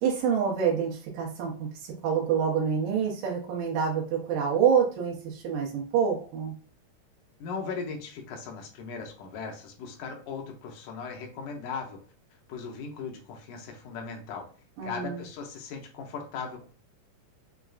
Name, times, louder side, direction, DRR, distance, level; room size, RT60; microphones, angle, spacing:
voice 1, 0.0-1.5 1.8-6.5 14.8-15.2, right 7 dB, 85° right, -2 dB, 2.4 m, -27 dB
voice 2, 7.4-12.0 12.5-14.5 14.8-16.7, left 5 dB, 80° left, 2 dB, 2.3 m, -38 dB
6.4 x 2.4 x 2.3 m, 0.42 s
omnidirectional pair, 3.7 m